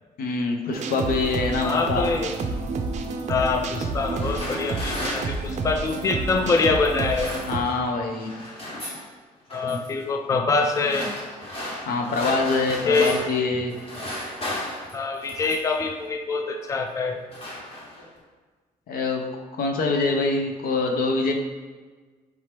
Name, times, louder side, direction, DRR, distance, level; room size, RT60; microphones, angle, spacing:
voice 1, 0.2-2.1 7.4-8.3 11.8-13.8 18.9-19.2 19.6-21.3, left 3 dB, 75° left, 3 dB, 0.6 m, -24 dB
sound 1, 0.7-7.6, right 3 dB, 50° right, 0.4 m, -29 dB
voice 2, 1.6-2.3 3.3-7.3 9.5-11.1 12.9-13.2 14.9-17.2, left 4 dB, 20° left, 5 dB, 0.3 m, -24 dB
sound 2, 4.0-6.2 6.9-7.9 8.1-9.1 9.5-9.9 10.6-13.4 13.7-15.8 16.6-16.8 17.1-18.2, left 1 dB, 40° left, 1.3 m, -35 dB
4.7 x 2.9 x 3.2 m, 1.4 s
cardioid pair, 95°, 15 cm